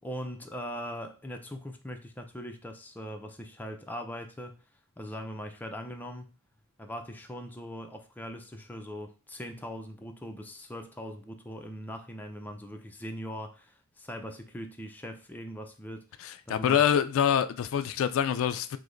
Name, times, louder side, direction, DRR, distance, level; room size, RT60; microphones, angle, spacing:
voice 1, 0.0-4.6 5.0-6.4 6.8-16.8, equal, 10° left, 0.4 m, -41 dB
voice 2, 16.2-18.8, left 8 dB, 75° left, 0.3 m, -26 dB
4.9 x 2.1 x 3.8 m
head